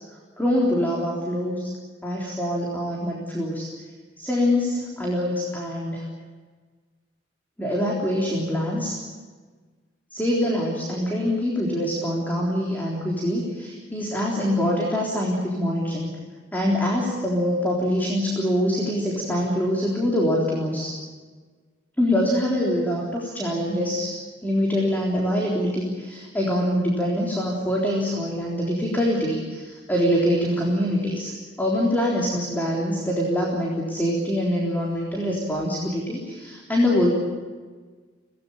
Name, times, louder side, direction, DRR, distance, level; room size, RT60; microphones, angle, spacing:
voice 1, 0.4-1.7 2.0-3.7 4.2-6.1 7.6-9.0 10.1-16.1 16.5-20.9 22.0-37.1, equal, 10° left, -3 dB, 3.7 m, -24 dB
24.5 x 18.5 x 8.7 m, 1.4 s
head